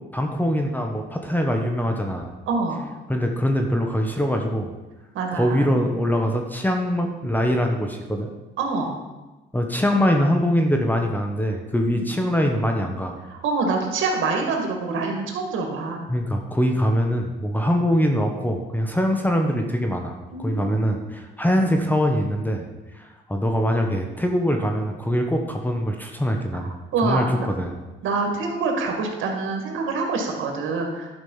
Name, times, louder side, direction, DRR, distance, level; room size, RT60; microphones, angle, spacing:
voice 1, 0.1-2.3 3.1-4.7 5.3-8.3 9.5-13.2 16.1-22.7 23.0-26.6 27.0-27.8, equal, 10° left, 3 dB, 1.2 m, -23 dB
voice 2, 2.5-2.9 5.1-5.8 8.6-9.0 11.9-12.1 13.3-16.1 20.3-20.9 26.5-26.7 26.9-27.5 28.0-31.1, right 3 dB, 80° right, 2 dB, 2.1 m, -26 dB
11.0 x 5.2 x 5.6 m, 1.1 s
cardioid pair, 90°, 20 cm